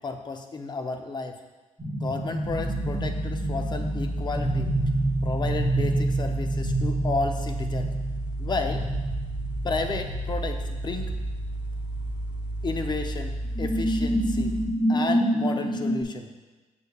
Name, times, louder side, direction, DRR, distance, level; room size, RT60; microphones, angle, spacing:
voice 1, 0.0-1.3 2.0-4.7 5.2-7.9 8.4-8.9 9.6-11.1 12.6-14.6 14.9-16.3, left 3 dB, 35° left, 5 dB, 0.6 m, -32 dB
sound 1, 1.8-11.5 11.8-12.1 13.5-16.0, right 1 dB, 5° right, 1.7 m, -28 dB
sound 2, 2.4-14.7, right 1 dB, 35° right, 0.7 m, -32 dB
6.9 x 6.4 x 2.3 m, 1.2 s
cardioid pair, 110°, 13 cm